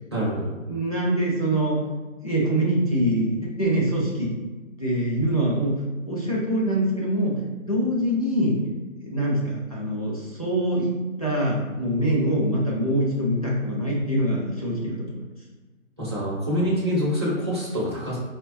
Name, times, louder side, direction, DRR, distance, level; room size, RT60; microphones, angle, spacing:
voice 1, 0.1-0.6 16.0-18.2, equal, 20° right, -8 dB, 0.5 m, -25 dB
voice 2, 0.7-1.8 2.2-4.3 4.8-5.8 6.1-7.4 7.7-8.6 9.0-15.2, right 1 dB, 30° left, -6 dB, 0.4 m, -24 dB
4.4 x 2.2 x 2.6 m, 1.2 s
hypercardioid pair, 170°, 41 cm